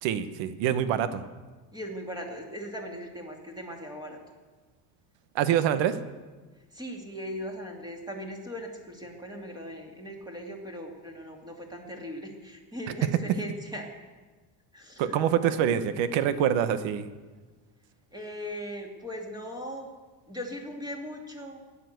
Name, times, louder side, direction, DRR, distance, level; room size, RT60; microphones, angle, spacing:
voice 1, 0.0-1.2 5.3-6.0 15.0-17.1, right 9 dB, 65° right, 12 dB, 1.2 m, -25 dB
voice 2, 1.7-4.2 6.7-13.9 14.7-15.7 18.1-19.9 20.3-21.6, equal, 10° right, 1 dB, 2.5 m, -39 dB
16.5 x 10.5 x 8.0 m, 1.3 s
cardioid pair, 145°, 47 cm